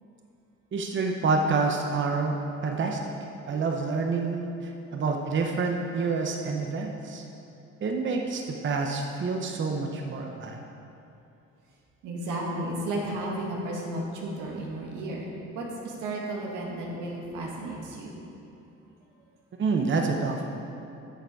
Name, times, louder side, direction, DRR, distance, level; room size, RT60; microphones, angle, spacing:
voice 1, 0.7-2.4 2.6-3.1 3.5-7.2 7.8-10.6 19.6-20.5, right 4 dB, 40° right, 2 dB, 0.8 m, -28 dB
voice 2, 12.0-15.3 15.5-18.2, right 1 dB, 90° right, -2 dB, 1.6 m, -33 dB
9.2 x 6.6 x 4.8 m, 2.8 s
cardioid pair, 90°, 30 cm